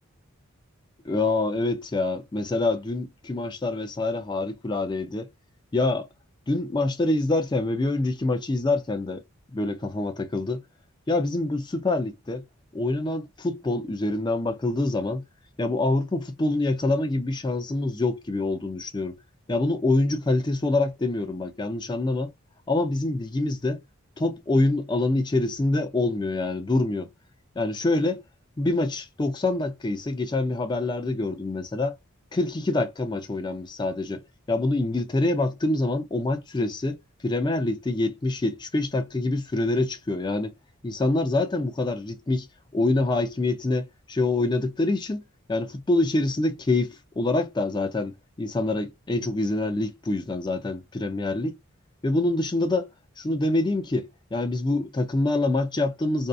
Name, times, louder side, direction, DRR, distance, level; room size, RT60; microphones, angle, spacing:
voice 1, 1.1-5.3 5.7-6.1 6.5-9.2 9.5-10.6 11.1-12.4 12.7-15.2 15.6-19.2 19.5-22.3 22.7-23.8 24.2-27.1 27.6-28.2 28.6-32.0 32.3-34.2 34.5-40.5 40.8-42.5 42.7-45.2 45.5-48.1 48.4-51.6 52.0-52.9 53.2-56.3, left 2 dB, 20° left, 0.4 m, -26 dB
2.6 x 2.3 x 2.3 m
head